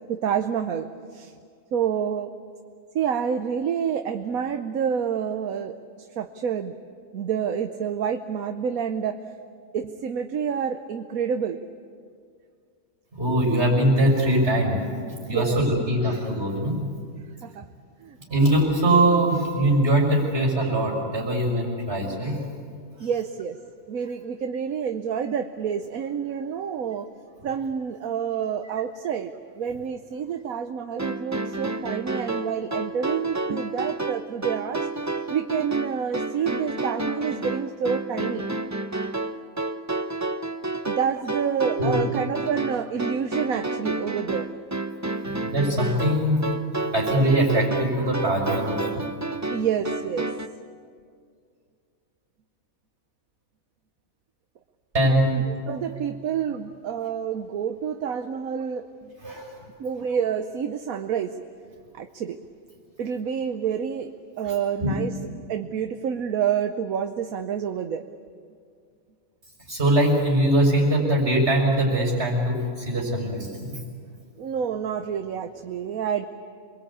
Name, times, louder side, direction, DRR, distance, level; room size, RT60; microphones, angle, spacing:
voice 1, 0.1-1.3 1.7-2.3 2.9-6.7 7.1-9.2 9.7-11.6 15.3-15.6 17.4-17.6 18.0-18.2 23.0-23.6 23.9-27.1 27.4-34.9 35.3-38.5 40.9-44.5 49.5-50.3 55.1-59.1 59.8-61.3 61.9-62.4 63.0-64.1 64.4-65.1 65.5-68.0 74.4-76.3, right 7 dB, 85° right, 7 dB, 1.3 m, -28 dB
voice 2, 13.1-14.8 15.3-16.9 18.3-22.4 23.0-23.1 41.7-42.0 45.3-46.5 46.8-49.0 49.5-49.6 54.9-55.3 59.2-59.6 64.4-64.5 64.8-64.9 69.7-73.8, right 1 dB, 45° right, -1 dB, 6.4 m, -22 dB
sound 1, 31.0-50.5, right 2 dB, 15° right, 0.6 m, -30 dB
27.5 x 22.5 x 8.7 m, 2.2 s
omnidirectional pair, 1.4 m